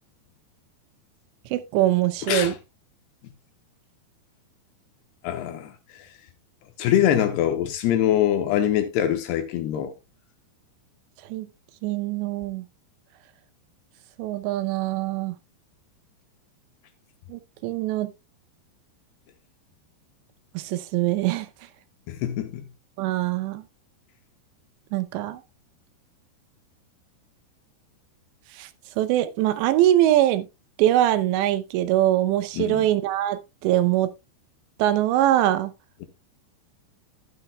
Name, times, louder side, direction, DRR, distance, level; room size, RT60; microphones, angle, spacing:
voice 1, 1.5-2.5 11.3-11.5 11.8-12.7 14.2-15.4 17.3-18.1 20.5-21.5 23.0-23.6 24.9-25.4 28.6-28.7 29.0-30.5 30.8-34.1 34.8-35.7, right 13 dB, 80° right, 2.9 m, -23 dB
voice 2, 5.2-6.1 6.8-9.9 22.1-22.6 32.5-32.9, left 11 dB, 75° left, 2.8 m, -24 dB
12.5 x 10.0 x 2.2 m
omnidirectional pair, 5.2 m